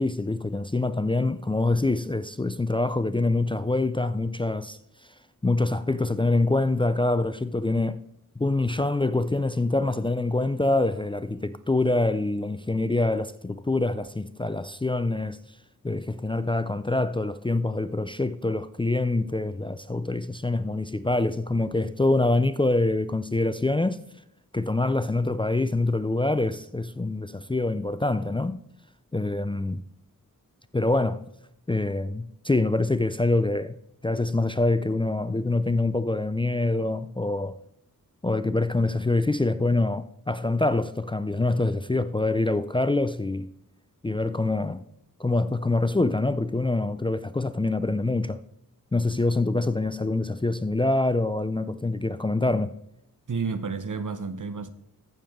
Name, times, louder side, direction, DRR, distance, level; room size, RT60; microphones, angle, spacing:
voice 1, 0.0-4.8 5.4-8.0 8.4-15.4 15.8-24.0 24.5-28.6 29.1-29.8 30.7-31.2 31.7-33.7 34.0-37.6 38.2-43.5 44.0-44.8 45.2-48.4 48.9-52.7, left 2 dB, 15° left, 0.4 m, -25 dB
voice 2, 53.3-54.7, right 5 dB, 65° right, 0.9 m, -30 dB
15.0 x 6.9 x 3.6 m
wide cardioid pair, 55°, 34 cm